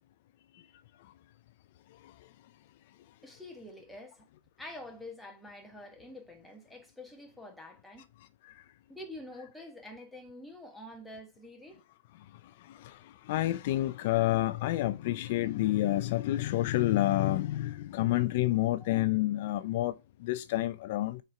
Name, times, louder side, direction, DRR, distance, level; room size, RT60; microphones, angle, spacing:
voice 1, 3.2-4.3 4.6-8.1 8.9-11.8 18.8-19.0, left 1 dB, ahead, 1.3 m, -47 dB
voice 2, 12.7-13.0 13.3-19.9 20.2-21.2, left 15 dB, 40° left, 0.3 m, -29 dB
6.5 x 4.4 x 4.8 m
hypercardioid pair, 165°, 0 cm